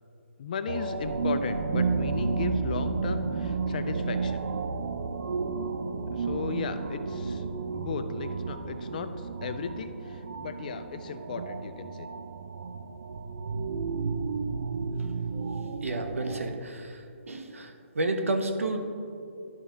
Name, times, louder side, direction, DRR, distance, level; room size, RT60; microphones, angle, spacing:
voice 1, 0.4-4.4 6.1-7.4 7.7-12.1, left 6 dB, 40° left, 9 dB, 0.4 m, -36 dB
sound 1, 0.7-16.6, right 4 dB, 70° right, 0.4 m, -32 dB
voice 2, 15.8-18.9, right 2 dB, 90° right, 6 dB, 0.9 m, -31 dB
11.5 x 4.1 x 3.8 m, 2.5 s
hypercardioid pair, 160°, 7 cm